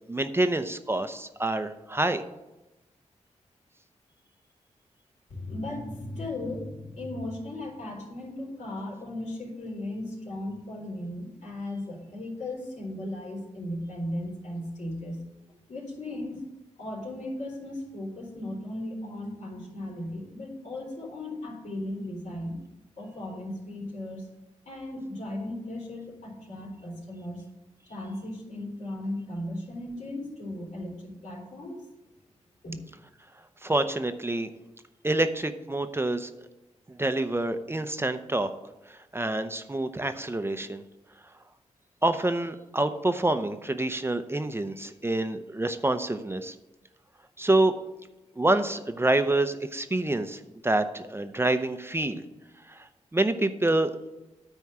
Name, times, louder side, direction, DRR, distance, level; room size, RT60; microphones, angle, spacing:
voice 1, 0.1-2.2 33.6-34.5 35.0-36.3 36.9-38.5 38.9-40.8 42.0-46.5 47.4-47.7 48.4-52.2 52.7-52.8 53.1-54.0, right 2 dB, 20° right, 9 dB, 0.6 m, -27 dB
voice 2, 5.3-15.2 15.7-16.5 16.8-22.6 23.0-24.3 24.7-27.4 27.9-31.9 32.6-32.8, left 1 dB, 75° left, -3 dB, 3.8 m, -36 dB
9.4 x 4.5 x 7.4 m, 0.99 s
cardioid pair, 60°, 12 cm